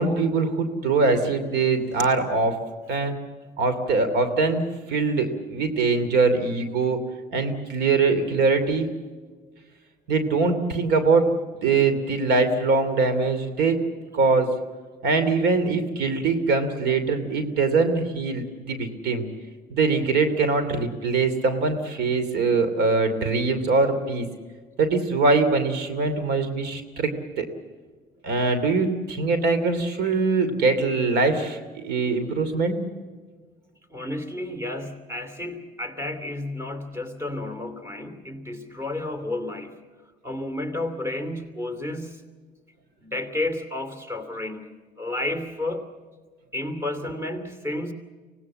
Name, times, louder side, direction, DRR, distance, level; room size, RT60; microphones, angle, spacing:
voice 1, 0.0-2.6 2.9-3.1 3.6-4.6 4.9-7.0 7.3-8.9 10.1-11.3 11.6-13.8 14.1-14.5 15.0-19.3 19.7-24.3 24.8-27.1 27.4-27.5 28.2-32.8, right 3 dB, 80° right, 10 dB, 2.7 m, -22 dB
voice 2, 33.9-39.9 40.2-42.2 43.0-45.9 46.5-47.9, left 1 dB, 15° right, 5 dB, 2.9 m, -31 dB
25.0 x 18.5 x 7.5 m, 1.4 s
cardioid pair, 110°, 17 cm